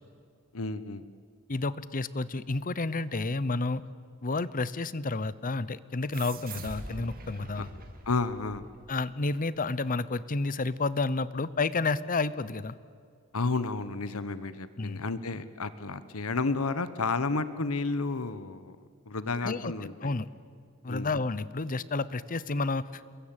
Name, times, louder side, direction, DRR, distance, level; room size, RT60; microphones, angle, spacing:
voice 1, 0.5-1.0 8.1-8.6 13.3-18.8 19.1-19.9 20.9-21.1, left 3 dB, 85° left, 13 dB, 1.2 m, -31 dB
voice 2, 1.5-3.8 4.2-7.7 8.9-12.7 14.8-15.0 19.4-19.7 20.0-20.3 20.8-23.1, left 3 dB, 40° left, 17 dB, 0.8 m, -30 dB
sound 1, 6.1-9.2, right 2 dB, 45° right, 2.6 m, -44 dB
28.5 x 22.5 x 9.1 m, 2.2 s
head